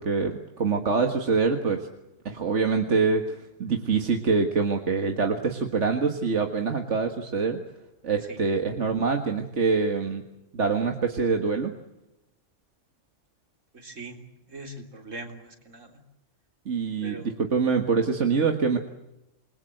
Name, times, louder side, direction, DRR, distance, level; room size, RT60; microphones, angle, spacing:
voice 1, 0.0-1.9 2.3-7.6 8.0-10.2 10.5-11.7 16.7-18.8, right 5 dB, 70° right, 4 dB, 2.0 m, -25 dB
voice 2, 13.7-14.2 14.5-15.9 17.0-17.3, right 2 dB, 85° right, 4 dB, 4.0 m, -41 dB
28.0 x 21.5 x 7.9 m, 0.92 s
omnidirectional pair, 1.3 m